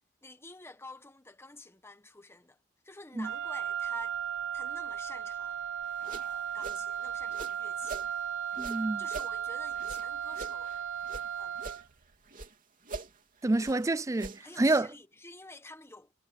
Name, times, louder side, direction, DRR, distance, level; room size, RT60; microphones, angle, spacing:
voice 1, 0.2-4.2 4.5-5.6 6.0-8.0 9.0-10.8 11.4-11.7 13.6-13.8 14.4-16.1, left 2 dB, 10° left, 1.1 m, -50 dB
Wind instrument woodwind instrument, 3.2-11.9, right 9 dB, 60° right, 1.2 m, -35 dB
sound 1, 5.8-8.1 8.5-11.3 11.5-12.5 12.8-14.6, right 3 dB, 40° right, 3.1 m, -45 dB
voice 2, 8.6-9.0 13.4-14.9, right 2 dB, 15° right, 0.4 m, -28 dB
head